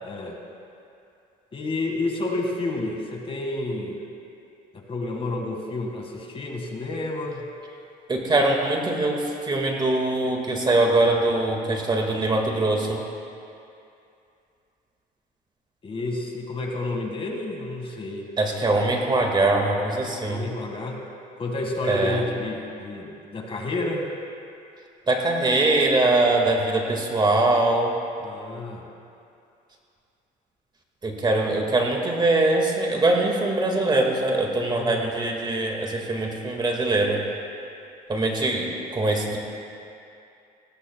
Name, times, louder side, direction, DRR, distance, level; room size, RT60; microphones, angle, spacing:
voice 1, 0.0-0.4 1.5-4.0 4.7-7.5 15.8-18.3 20.2-21.0 21.4-24.1 28.2-28.9 34.7-35.1, left 2 dB, 35° left, 1 dB, 1.8 m, -30 dB
voice 2, 8.1-13.0 18.4-20.4 21.9-22.2 25.1-27.9 31.0-37.2 38.1-39.4, right 2 dB, 25° right, 1 dB, 1.9 m, -22 dB
19.5 x 18.0 x 2.3 m, 2.6 s
cardioid pair, 110°, 17 cm